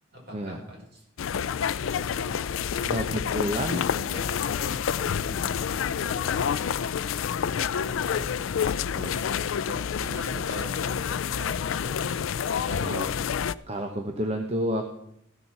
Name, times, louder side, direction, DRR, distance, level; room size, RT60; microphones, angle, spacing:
voice 1, 0.1-1.0 1.8-4.8 5.9-6.8 7.5-8.7 9.0-9.4 9.7-12.4, right 1 dB, 55° right, -2 dB, 4.8 m, -43 dB
sound 1, 1.2-13.5, left 7 dB, 80° left, 0.4 m, -28 dB
voice 2, 2.9-3.9 5.3-5.6 8.9-9.1 9.7-9.8 12.6-13.1 13.7-14.9, equal, 30° right, 4 dB, 1.0 m, -30 dB
14.5 x 7.0 x 5.8 m, 0.72 s
head